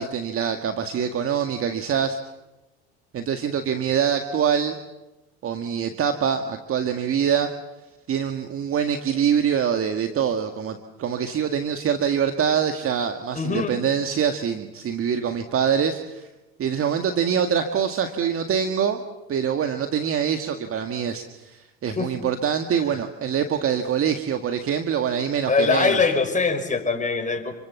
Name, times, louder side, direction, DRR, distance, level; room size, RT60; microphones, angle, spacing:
voice 1, 0.0-2.2 3.1-4.8 5.4-7.5 8.1-16.3 16.6-19.0 19.3-25.9, right 8 dB, 40° right, 6 dB, 2.0 m, -24 dB
voice 2, 13.3-13.8 22.0-22.1 25.5-27.6, left 4 dB, 20° left, 5 dB, 5.7 m, -22 dB
29.0 x 24.5 x 7.2 m, 1.0 s
hypercardioid pair, 75°, 34 cm